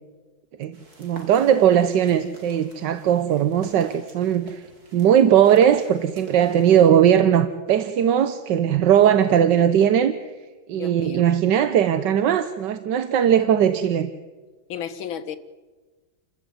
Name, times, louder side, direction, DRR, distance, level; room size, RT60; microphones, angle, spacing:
voice 1, 0.6-4.6 4.9-10.3 10.7-14.1, right 9 dB, 65° right, 11 dB, 1.4 m, -19 dB
sound 1, 0.7-6.9, right 2 dB, 45° right, 3.4 m, -48 dB
voice 2, 10.7-11.2 14.7-15.4, left 8 dB, 70° left, 10 dB, 2.1 m, -33 dB
29.5 x 14.0 x 9.5 m, 1.3 s
omnidirectional pair, 2.3 m